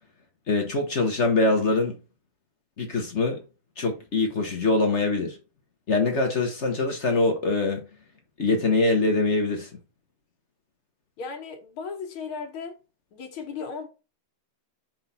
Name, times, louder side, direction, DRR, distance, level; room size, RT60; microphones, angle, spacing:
voice 1, 0.5-2.0 2.8-3.4 3.8-5.4 5.9-7.9 8.4-9.7, left 2 dB, 40° left, 1.2 m, -23 dB
voice 2, 11.2-12.8 13.1-13.9, left 5 dB, 90° left, 2.0 m, -36 dB
5.5 x 4.7 x 4.1 m
omnidirectional pair, 2.2 m